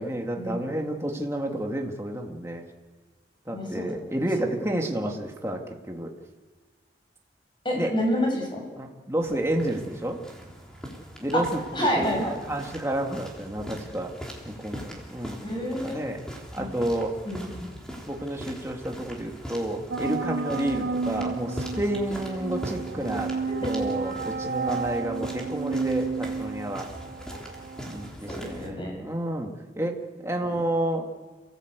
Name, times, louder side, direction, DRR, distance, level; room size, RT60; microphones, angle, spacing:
voice 1, 0.0-2.6 3.5-5.6 5.9-6.1 7.7-7.9 8.7-10.2 11.2-14.1 14.5-15.5 15.8-16.2 16.5-17.1 18.1-23.3 23.6-26.9 27.9-30.0 30.2-31.1, right 1 dB, 15° right, 1 dB, 2.3 m, -30 dB
voice 2, 3.5-4.5 7.6-8.6 11.3-11.4 11.7-12.3 15.4-16.0 16.6-16.7 17.2-17.6 28.3-28.9, equal, 25° left, 1 dB, 6.8 m, -28 dB
sound 1, 9.2-28.7, equal, 5° left, 3.6 m, -41 dB
sound 2, 19.9-28.1, right 4 dB, 55° right, 0.8 m, -32 dB
29.5 x 16.5 x 8.3 m, 1.4 s
head